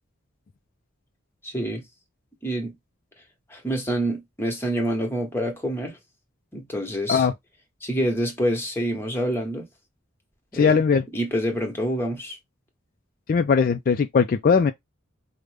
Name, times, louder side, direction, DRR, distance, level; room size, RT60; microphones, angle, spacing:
voice 1, 1.4-1.8 2.4-2.7 3.5-6.0 6.5-7.3 7.8-9.7 10.5-10.8 11.1-12.4, equal, 10° left, 1.1 m, -27 dB
voice 2, 10.5-11.0 13.3-14.7, left 5 dB, 45° left, 0.3 m, -19 dB
5.0 x 2.1 x 3.2 m
head